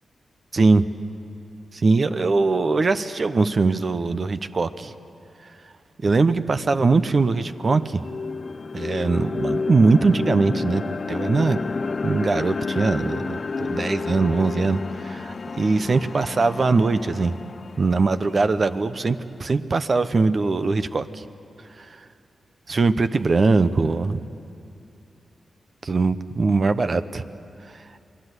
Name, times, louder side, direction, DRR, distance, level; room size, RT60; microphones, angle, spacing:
voice 1, 0.5-0.9 1.8-4.9 6.0-8.0 8.7-10.8 11.1-11.6 12.0-17.3 17.8-21.3 22.7-24.2 25.8-27.2, right 3 dB, 50° right, 11 dB, 0.8 m, -21 dB
sound 1, 7.2-19.3, left 4 dB, 50° left, 0.5 m, -31 dB
28.5 x 20.0 x 8.2 m, 2.7 s
cardioid pair, 50°, 0 cm